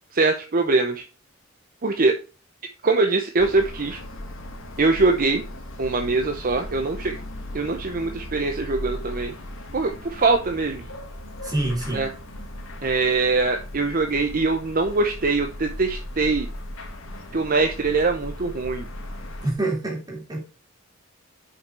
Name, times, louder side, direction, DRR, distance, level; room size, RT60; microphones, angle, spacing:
voice 1, 0.1-1.0 1.8-2.2 2.8-4.0 4.8-5.4 5.8-7.2 7.5-9.3 9.7-10.8 11.9-12.1 12.8-16.5 17.3-18.9, right 3 dB, 45° right, 0.8 m, -22 dB
sound 1, 3.4-19.5, left 1 dB, 70° left, 1.8 m, -37 dB
voice 2, 11.4-12.1 19.4-20.4, right 2 dB, 20° right, 3.0 m, -26 dB
6.9 x 5.7 x 4.7 m
head